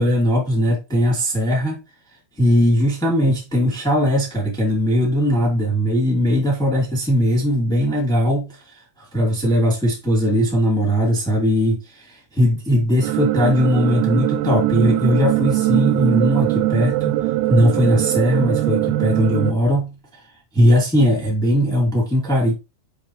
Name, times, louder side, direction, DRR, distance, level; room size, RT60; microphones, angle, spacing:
voice 1, 0.0-1.8 2.4-17.2 17.5-20.2 20.5-22.5, equal, 5° left, 0.4 m, -19 dB
sound 1, 13.0-19.5, right 16 dB, 85° right, 3.1 m, -21 dB
7.7 x 5.7 x 3.1 m
omnidirectional pair, 6.0 m